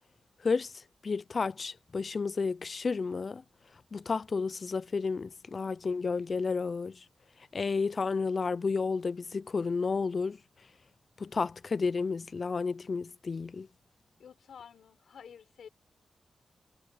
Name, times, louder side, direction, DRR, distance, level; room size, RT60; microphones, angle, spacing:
voice 1, 1.0-3.4 3.9-7.0 7.5-10.4 11.2-13.7, left 4 dB, 35° left, 0.3 m, -31 dB
voice 2, 14.2-15.7, left 7 dB, 75° left, 5.8 m, -50 dB
wide cardioid pair, 175°, 0 cm